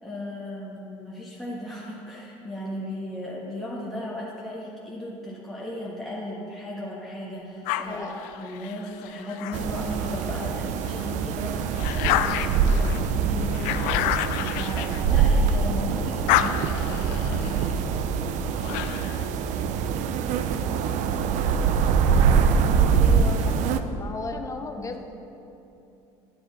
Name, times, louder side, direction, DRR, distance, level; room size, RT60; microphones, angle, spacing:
voice 1, 0.0-8.1 8.4-17.8 22.2-22.4 22.7-23.3 23.6-23.9 24.6-25.1, left 1 dB, ahead, -6 dB, 1.3 m, -36 dB
sound 1, 7.6-10.3 10.8-15.7 16.0-19.3, left 12 dB, 70° left, 0.4 m, -30 dB
voice 2, 7.8-8.2 23.0-23.6 23.9-25.0, left 3 dB, 20° left, 6 dB, 0.7 m, -35 dB
sound 2, 9.5-23.8, right 6 dB, 60° right, 0.5 m, -24 dB
9.7 x 6.7 x 4.0 m, 2.8 s
hypercardioid pair, 85°, 14 cm